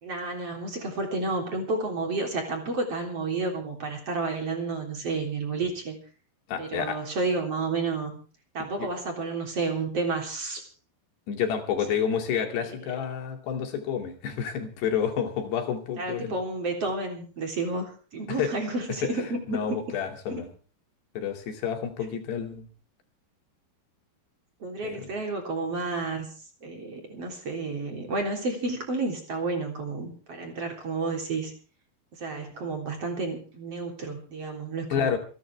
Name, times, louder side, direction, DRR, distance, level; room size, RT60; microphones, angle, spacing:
voice 1, 0.0-6.0 6.6-8.2 8.5-10.7 11.9-12.0 12.6-12.7 16.0-19.8 20.3-20.4 22.5-22.6 24.6-26.3 26.6-31.5 32.2-35.2, right 3 dB, 40° right, 3 dB, 4.3 m, -31 dB
voice 2, 6.5-7.0 8.8-8.9 11.3-16.3 18.3-18.5 19.0-19.1 19.5-20.5 21.2-22.7 24.8-25.1 34.9-35.2, left 8 dB, 85° left, 4 dB, 4.7 m, -29 dB
27.5 x 11.5 x 3.5 m, 0.39 s
omnidirectional pair, 4.7 m